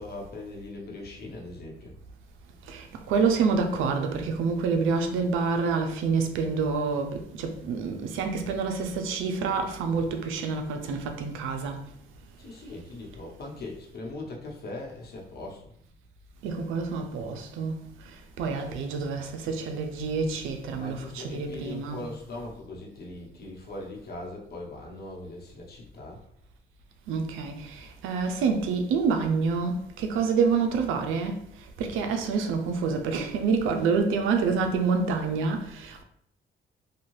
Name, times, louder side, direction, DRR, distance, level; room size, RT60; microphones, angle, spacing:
voice 1, 0.0-2.0 12.4-15.7 20.6-26.2, left 2 dB, 55° left, 0.9 m, -40 dB
voice 2, 2.7-11.8 16.4-22.0 27.1-31.4 31.8-36.0, right 5 dB, 90° right, 0.5 m, -27 dB
2.6 x 2.3 x 3.1 m
cardioid pair, 90°, 20 cm